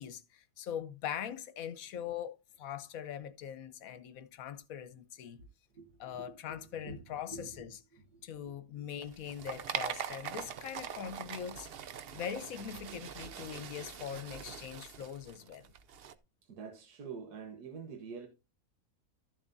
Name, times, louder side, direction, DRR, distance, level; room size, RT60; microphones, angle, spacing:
voice 1, 0.0-5.4 6.0-7.8 8.2-11.7 12.1-15.7, left 9 dB, 65° left, 1.2 m, -42 dB
voice 2, 5.7-6.3 6.8-7.5 7.9-8.2 16.5-18.3, right 5 dB, 85° right, 1.7 m, -46 dB
sound 1, 9.0-16.1, right 8 dB, 55° right, 0.6 m, -42 dB
13.0 x 7.1 x 2.7 m
omnidirectional pair, 1.7 m